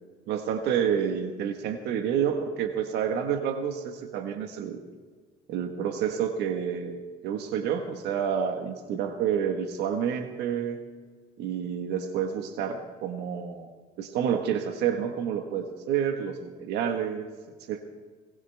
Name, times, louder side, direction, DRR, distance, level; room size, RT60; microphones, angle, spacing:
voice 1, 0.3-4.8 5.5-10.8 11.4-13.7 14.0-17.3 17.7-17.8, right 8 dB, 85° right, 6 dB, 1.4 m, -29 dB
21.0 x 20.0 x 3.5 m, 1.5 s
cardioid pair, 110°, 17 cm